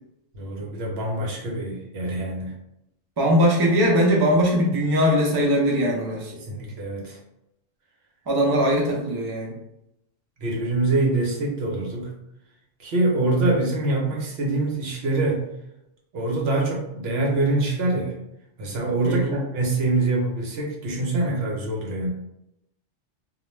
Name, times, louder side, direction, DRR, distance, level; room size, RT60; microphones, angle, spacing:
voice 1, 0.3-2.5 6.3-7.2 10.4-12.1 12.8-15.4 16.1-18.2 18.6-22.1, right 2 dB, 65° right, -2 dB, 0.9 m, -25 dB
voice 2, 3.2-6.3 8.3-9.5 19.0-19.3, equal, 30° right, -2 dB, 0.4 m, -20 dB
2.3 x 2.1 x 3.0 m, 0.82 s
omnidirectional pair, 1.2 m